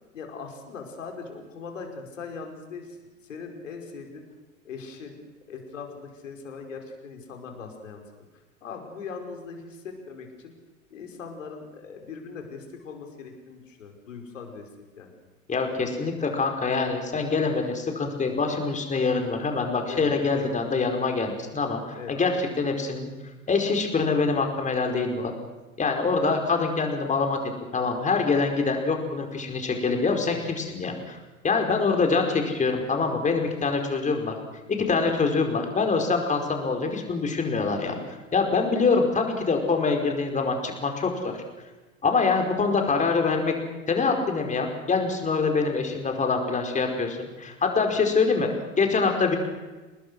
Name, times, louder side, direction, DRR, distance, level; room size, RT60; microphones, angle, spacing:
voice 1, 0.1-3.0 3.2-4.2 4.6-5.2 5.5-8.0 8.3-10.5 10.9-14.7 15.0-15.1 19.9-20.6 21.9-22.2 33.3-33.4 35.0-35.1 47.9-48.0, left 5 dB, 65° left, 3 dB, 5.2 m, -40 dB
voice 2, 15.5-23.1 23.5-25.3 25.8-27.4 27.7-31.2 31.4-34.4 34.7-38.0 38.3-41.4 42.0-43.5 43.9-48.5 48.8-49.4, left 4 dB, 20° left, 3 dB, 5.0 m, -25 dB
29.0 x 20.0 x 6.4 m, 1.2 s
figure-of-eight pair, 85°, 41 cm